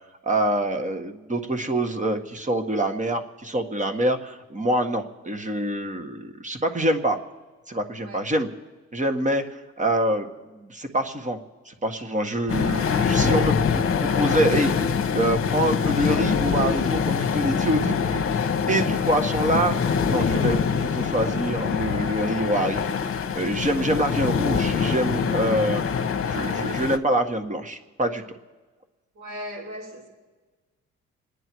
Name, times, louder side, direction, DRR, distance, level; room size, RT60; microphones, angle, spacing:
voice 1, 0.2-7.2 7.7-8.5 8.9-9.4 9.8-10.3 10.5-11.4 11.6-14.7 15.1-18.2 18.7-19.8 20.1-22.8 23.0-25.9 26.3-28.2, right 1 dB, 25° right, 7 dB, 1.7 m, -25 dB
sound 1, 12.5-27.0, left 6 dB, 45° left, 1.2 m, -24 dB
voice 2, 29.1-30.1, equal, 65° right, -3 dB, 5.1 m, -38 dB
27.5 x 10.0 x 4.7 m, 1.3 s
cardioid pair, 90°, 30 cm